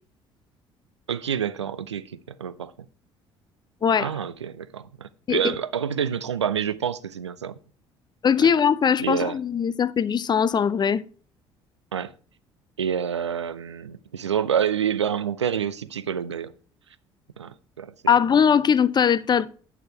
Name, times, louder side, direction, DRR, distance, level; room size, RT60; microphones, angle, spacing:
voice 1, 1.1-2.7 4.0-7.6 9.0-9.4 11.9-12.1 12.8-16.5 17.4-18.2, right 8 dB, 90° right, 0.4 m, -28 dB
voice 2, 8.2-11.0 18.1-19.5, left 7 dB, 30° left, 0.5 m, -20 dB
8.9 x 6.5 x 4.7 m
figure-of-eight pair, 55°, 14 cm